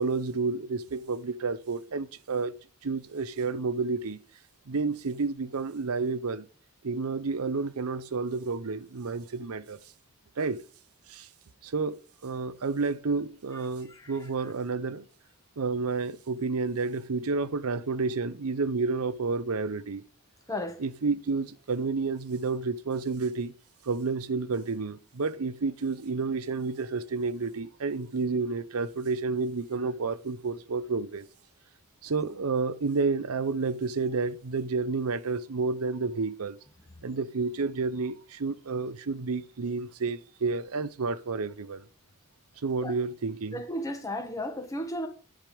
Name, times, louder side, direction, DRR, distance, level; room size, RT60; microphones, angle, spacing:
voice 1, 0.0-2.5 2.8-4.2 4.7-6.5 6.8-9.8 10.4-10.6 11.1-11.3 11.6-15.0 15.6-20.0 20.8-23.5 23.8-31.3 32.0-36.6 37.0-41.8 42.6-43.6, right 4 dB, 85° right, 0.7 m, -30 dB
voice 2, 43.5-45.1, left 1 dB, 15° left, 1.4 m, -34 dB
11.0 x 5.1 x 5.1 m
head